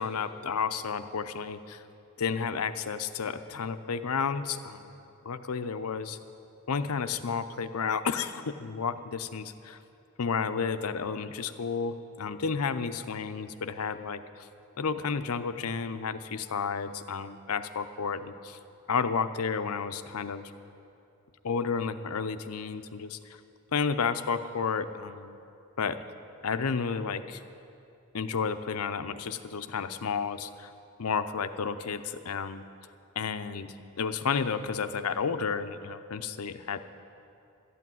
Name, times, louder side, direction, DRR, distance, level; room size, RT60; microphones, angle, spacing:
voice 1, 0.0-1.8 2.2-4.9 5.2-6.2 6.7-9.8 10.2-14.5 14.8-18.6 18.9-20.5 21.4-23.4 23.7-25.4 25.8-26.0 26.4-27.4 28.1-30.7 31.0-32.6 33.2-36.8, left 5 dB, 85° left, 11 dB, 0.6 m, -31 dB
12.5 x 8.5 x 9.2 m, 2.6 s
head